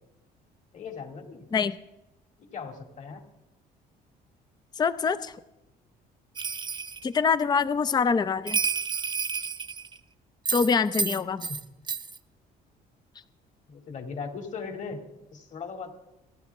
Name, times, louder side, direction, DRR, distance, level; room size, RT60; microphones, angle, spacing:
voice 1, 0.7-1.5 2.4-3.2 11.5-11.6 13.7-15.0 15.3-15.9, left 5 dB, 45° left, 4 dB, 2.6 m, -38 dB
voice 2, 4.8-5.4 7.0-8.6 10.5-11.5, left 5 dB, 25° left, 14 dB, 0.5 m, -25 dB
Bell, 6.4-7.0 8.5-10.0 10.5-11.6 11.9-12.2, right 5 dB, 25° right, 0.8 m, -30 dB
30.0 x 11.5 x 3.6 m, 0.94 s
cardioid pair, 110°, 17 cm